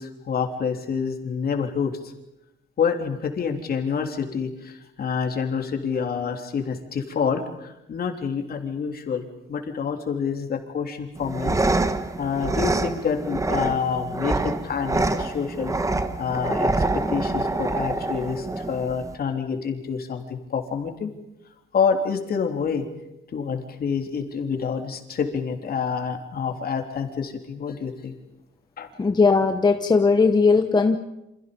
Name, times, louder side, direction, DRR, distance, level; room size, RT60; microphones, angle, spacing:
voice 1, 0.0-1.9 2.8-11.6 12.2-15.7 16.2-21.1 21.7-22.9 23.3-28.1 28.8-28.9, left 6 dB, 55° left, 4 dB, 3.4 m, -27 dB
sound 1, 11.2-19.1, right 2 dB, 15° right, 1.3 m, -26 dB
voice 2, 29.0-31.0, left 4 dB, 20° left, 6 dB, 1.0 m, -18 dB
28.5 x 27.0 x 5.3 m, 0.88 s
cardioid pair, 140°, 19 cm